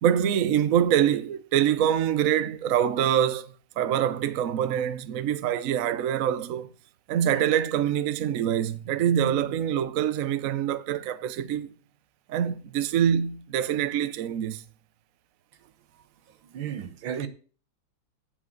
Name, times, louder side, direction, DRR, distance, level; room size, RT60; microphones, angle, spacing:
voice 1, 0.0-6.7 7.1-11.7 12.3-14.6, right 9 dB, 60° right, 0.9 m, -25 dB
voice 2, 16.4-17.3, right 9 dB, 85° right, 2.0 m, -33 dB
8.2 x 7.8 x 7.8 m
omnidirectional pair, 2.1 m